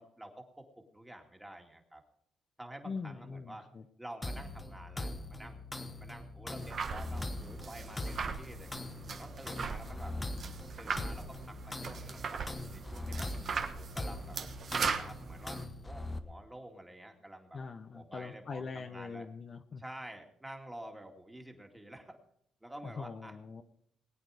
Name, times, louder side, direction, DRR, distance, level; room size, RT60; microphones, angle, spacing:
voice 1, 0.0-2.0 2.6-3.7 4.0-5.6 6.0-8.7 9.1-10.2 10.8-13.3 13.7-14.4 14.6-17.6 17.9-19.3 19.8-22.2 22.6-23.4, right 1 dB, 10° right, 3 dB, 2.3 m, -49 dB
voice 2, 2.8-3.8 17.5-19.8 22.8-23.6, left 5 dB, 45° left, 7 dB, 0.9 m, -42 dB
sound 1, 4.2-16.2, left 2 dB, 20° left, 1.1 m, -41 dB
sound 2, 6.6-15.6, right 5 dB, 50° right, 1.2 m, -39 dB
20.0 x 8.9 x 5.0 m, 0.69 s
cardioid pair, 90°, 0 cm